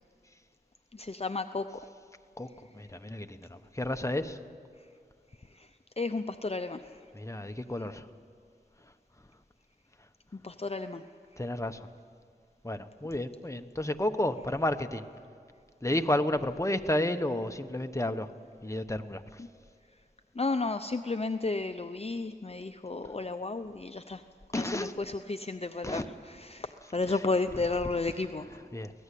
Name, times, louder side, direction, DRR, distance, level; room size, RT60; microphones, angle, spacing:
voice 1, 0.9-1.9 5.5-5.7 6.0-7.0 10.4-11.0 19.4-19.5 20.4-24.2 24.5-28.6, left 3 dB, 35° left, 8 dB, 0.7 m, -33 dB
voice 2, 2.7-4.4 7.1-8.0 11.4-11.9 12.6-15.0 15.8-18.3 18.6-19.2 24.5-24.9 25.8-26.1 27.1-27.2 27.6-27.7 28.5-28.9, left 1 dB, 15° left, 8 dB, 1.1 m, -31 dB
24.0 x 17.5 x 8.5 m, 2.2 s
wide cardioid pair, 50°, 17 cm